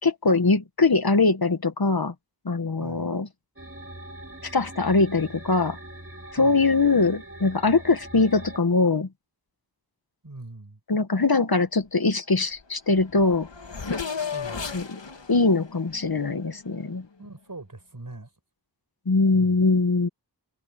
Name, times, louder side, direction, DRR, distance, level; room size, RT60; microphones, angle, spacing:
voice 1, 0.0-2.1 2.4-3.3 4.4-5.8 6.3-9.1 10.9-13.5 14.7-15.0 15.3-17.1 19.0-20.1, left 3 dB, 60° left, 1.5 m, -22 dB
voice 2, 2.8-3.1 6.4-6.6 10.2-10.8 14.3-14.9 17.2-18.3 19.3-19.6, right 2 dB, 50° right, 4.9 m, -41 dB
sound 1, 3.6-8.6, right 1 dB, 30° right, 3.3 m, -42 dB
Race car auto racing / Accelerating revving vroom, 12.6-12.7 12.9-16.9, left 6 dB, 90° left, 2.0 m, -35 dB
wide cardioid pair, 45°, 42 cm